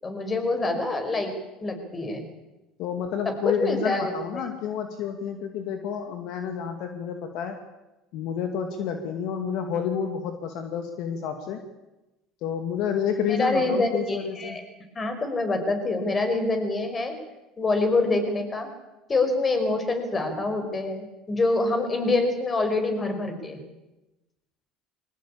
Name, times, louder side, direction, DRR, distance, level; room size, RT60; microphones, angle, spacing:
voice 1, 0.0-1.3 1.6-2.2 3.3-4.4 13.3-14.6 15.0-17.2 17.6-18.7 19.1-23.6, left 2 dB, 25° left, 7 dB, 5.8 m, -26 dB
voice 2, 2.8-7.6 8.1-11.6 12.4-14.6, left 7 dB, 65° left, 6 dB, 2.3 m, -29 dB
22.5 x 18.5 x 8.8 m, 1.0 s
supercardioid pair, 90°, 0 cm